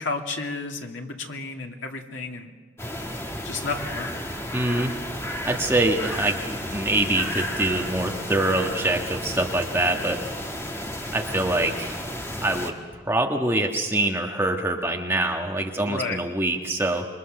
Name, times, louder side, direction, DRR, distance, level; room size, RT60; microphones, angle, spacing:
voice 1, 0.0-2.5 3.4-4.1 15.8-16.2, left 3 dB, 85° left, 2 dB, 2.5 m, -32 dB
sound 1, 2.8-12.7, left 1 dB, 15° left, 1.7 m, -32 dB
voice 2, 4.5-5.0 5.4-10.2 11.1-12.0 12.4-17.1, right 2 dB, 10° right, 1 dB, 1.5 m, -25 dB
27.0 x 23.0 x 6.7 m, 1.4 s
head